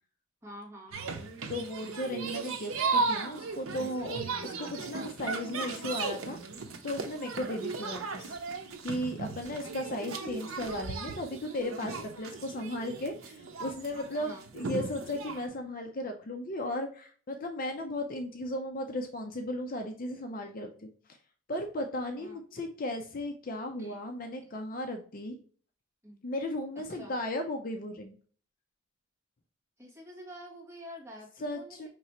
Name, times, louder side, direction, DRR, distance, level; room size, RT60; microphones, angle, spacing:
voice 1, 0.4-1.2 9.2-9.6 14.2-14.4 22.2-22.4 23.8-24.0 24.5-24.6 26.0-26.2 27.0-27.1 29.8-31.9, equal, 10° right, -4 dB, 1.8 m, -47 dB
sound 1, 0.9-15.4, right 4 dB, 90° right, 0.7 m, -36 dB
voice 2, 1.5-6.4 6.8-8.4 8.8-20.9 21.5-25.4 26.2-28.2 31.4-31.9, left 1 dB, 45° left, 4 dB, 0.5 m, -36 dB
5.2 x 3.2 x 2.9 m, 0.44 s
head